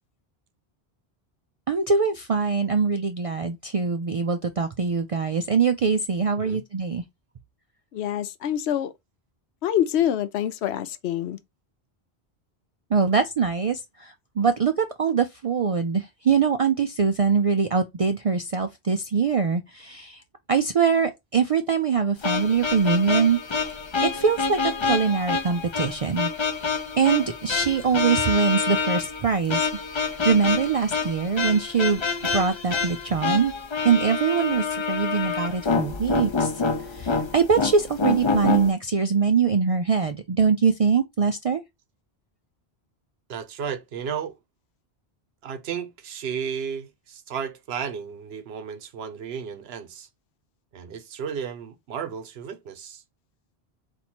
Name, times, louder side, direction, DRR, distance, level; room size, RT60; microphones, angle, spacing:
voice 1, 1.7-7.0 12.9-20.2 20.5-23.7 24.1-26.3 26.6-29.6 30.2-32.0 32.3-33.5 33.8-36.5 36.9-41.6, right 5 dB, 60° right, 0.3 m, -23 dB
voice 2, 7.9-8.9 9.6-11.4, left 11 dB, 85° left, 0.8 m, -25 dB
sound 1, 22.2-38.7, left 4 dB, 35° left, 0.5 m, -27 dB
voice 3, 43.3-44.3 45.4-50.1 50.7-53.0, right 7 dB, 75° right, 0.9 m, -33 dB
4.3 x 2.6 x 4.3 m
omnidirectional pair, 1.1 m